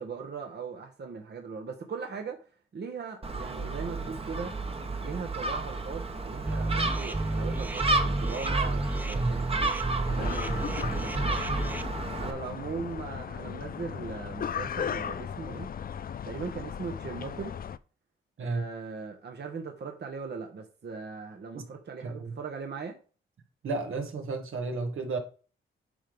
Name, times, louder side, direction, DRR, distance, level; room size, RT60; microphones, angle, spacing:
voice 1, 0.0-2.4 2.7-4.6 5.0-9.5 9.9-11.6 12.2-15.7 16.2-17.5 18.4-23.0, right 5 dB, 50° right, 1.3 m, -39 dB
Gull seagull, 3.2-12.3, right 2 dB, 25° right, 1.2 m, -32 dB
sound 1, 6.5-11.8, right 2 dB, 10° right, 0.6 m, -31 dB
sound 2, 10.1-17.8, left 8 dB, 45° left, 0.4 m, -37 dB
voice 2, 22.0-22.3 23.6-25.2, right 3 dB, 75° right, 1.7 m, -32 dB
10.0 x 3.4 x 5.4 m
cardioid pair, 95°, 21 cm